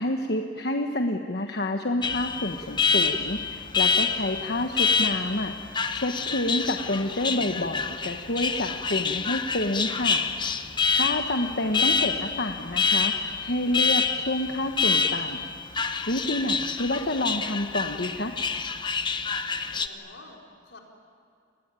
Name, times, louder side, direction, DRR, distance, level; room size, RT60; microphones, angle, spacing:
voice 1, 0.0-5.5 5.9-10.2 10.9-15.4 15.8-18.4, left 1 dB, 60° left, 4 dB, 1.3 m, -28 dB
Alarm, 2.0-19.9, left 5 dB, 25° left, 1.0 m, -27 dB
voice 2, 11.2-11.6 19.4-20.8, left 2 dB, 85° left, 0 dB, 4.8 m, -50 dB
29.0 x 21.0 x 9.0 m, 2.4 s
head